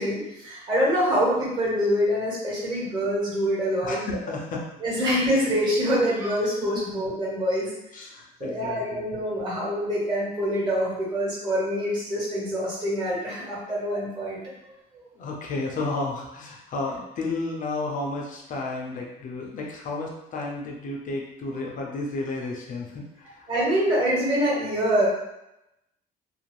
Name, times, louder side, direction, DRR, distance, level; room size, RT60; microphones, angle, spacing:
voice 1, 0.0-4.0 4.8-7.7 8.4-14.4 14.9-15.0 23.5-25.1, equal, 25° right, -7 dB, 1.3 m, -25 dB
voice 2, 3.8-4.6 6.7-6.9 7.9-9.0 15.2-23.5, left 2 dB, 50° left, -1 dB, 0.6 m, -32 dB
2.5 x 2.0 x 3.1 m, 0.87 s
cardioid pair, 110°, 17 cm